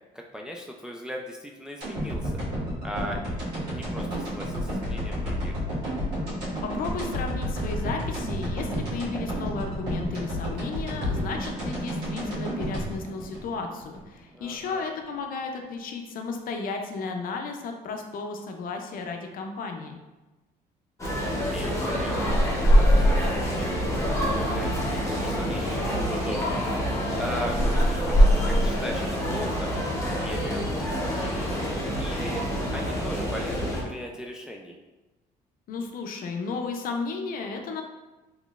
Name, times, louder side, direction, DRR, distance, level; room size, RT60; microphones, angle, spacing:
voice 1, 0.1-2.4 2.8-3.4 3.6-5.6 14.3-14.9 21.2-23.7 24.0-24.1 24.3-29.7 30.1-31.5 32.0-32.4 32.7-34.8, equal, 5° right, 0 dB, 0.3 m, -38 dB
sound 1, 1.8-14.0 14.4-14.5, equal, 85° right, 1.4 m, -31 dB
voice 2, 6.6-20.0 35.7-37.8, left 4 dB, 55° left, 4 dB, 0.5 m, -34 dB
sound 2, 21.0-33.8, equal, 15° left, 0.9 m, -24 dB
3.7 x 3.1 x 2.4 m, 1.1 s
cardioid pair, 110°, 17 cm